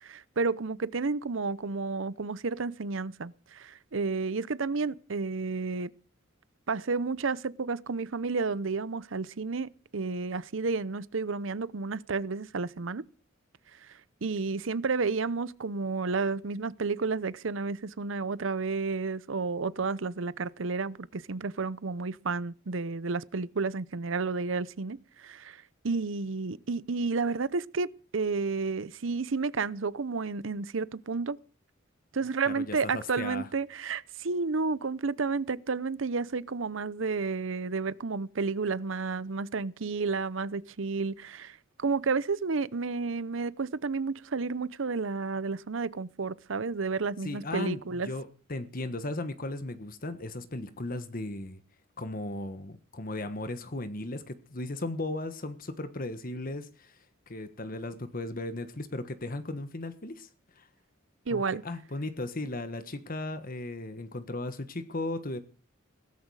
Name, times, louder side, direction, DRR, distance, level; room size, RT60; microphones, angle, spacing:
voice 1, 0.0-5.9 6.7-13.0 14.2-31.4 32.1-48.1 61.3-61.6, right 4 dB, 70° right, 0.7 m, -31 dB
voice 2, 32.5-33.5 47.2-51.6 52.0-60.3 60.5-60.7 61.3-65.4, left 2 dB, 45° left, 1.3 m, -36 dB
17.0 x 14.0 x 4.8 m
head